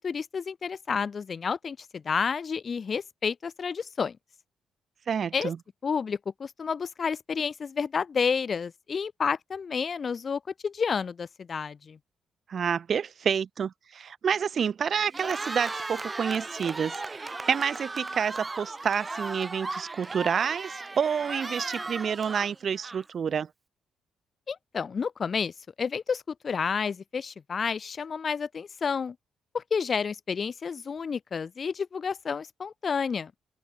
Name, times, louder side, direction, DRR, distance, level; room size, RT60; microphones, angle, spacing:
voice 1, 0.0-4.2 5.3-5.5 5.8-12.0 24.5-29.2 29.5-33.3, left 6 dB, 40° left, 0.9 m, -30 dB
voice 2, 5.1-5.6 12.5-23.5, right 7 dB, 50° right, 0.4 m, -29 dB
Cheering, 15.0-23.3, right 3 dB, 20° right, 1.0 m, -36 dB
open air
cardioid pair, 90°, 0 cm